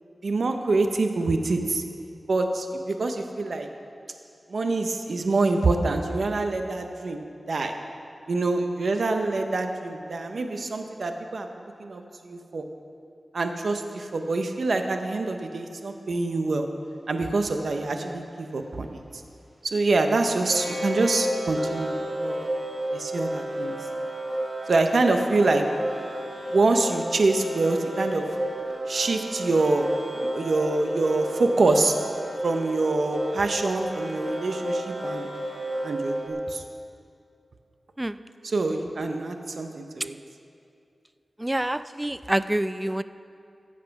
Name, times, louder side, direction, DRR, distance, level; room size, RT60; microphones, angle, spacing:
voice 1, 0.2-1.8 2.3-3.7 4.5-7.7 8.3-11.5 11.8-12.6 13.3-16.6 17.1-19.0 19.6-22.4 22.9-23.8 24.7-25.6 26.5-28.2 28.9-29.9 30.1-31.9 32.4-35.3 35.8-36.6 38.4-40.1, right 3 dB, 70° right, 5 dB, 0.8 m, -25 dB
sound 1, 17.8-17.9 20.5-36.3, equal, 50° right, 2.5 m, -32 dB
voice 2, 41.4-43.0, right 1 dB, 15° right, 13 dB, 0.4 m, -27 dB
14.5 x 7.5 x 5.8 m, 2.4 s
wide cardioid pair, 90°, 0 cm